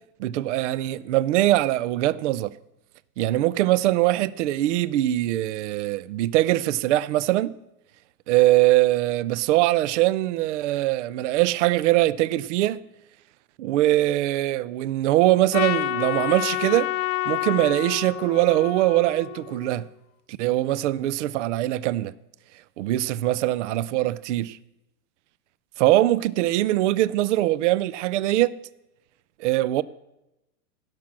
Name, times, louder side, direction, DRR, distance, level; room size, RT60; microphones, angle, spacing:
voice 1, 0.2-2.6 3.2-7.6 8.3-12.8 13.6-16.9 17.3-19.9 20.4-22.1 22.8-24.6 25.8-28.6 29.4-29.8, right 15 dB, 55° right, 0.5 m, -22 dB
Trumpet, 15.5-19.9, left 15 dB, 70° left, 0.9 m, -29 dB
16.0 x 6.1 x 7.3 m
supercardioid pair, 155°, 46 cm